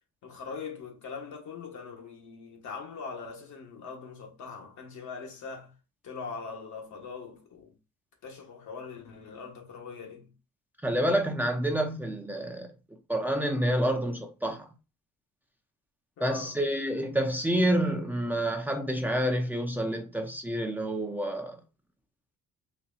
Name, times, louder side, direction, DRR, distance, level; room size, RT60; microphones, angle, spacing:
voice 1, 0.2-5.7 6.0-7.7 8.2-10.3 16.2-16.6, left 5 dB, 70° left, 1.4 m, -41 dB
voice 2, 10.8-12.7 13.1-14.7 16.2-21.6, right 1 dB, 5° right, 0.7 m, -28 dB
4.3 x 2.8 x 2.6 m
cardioid pair, 90°, 30 cm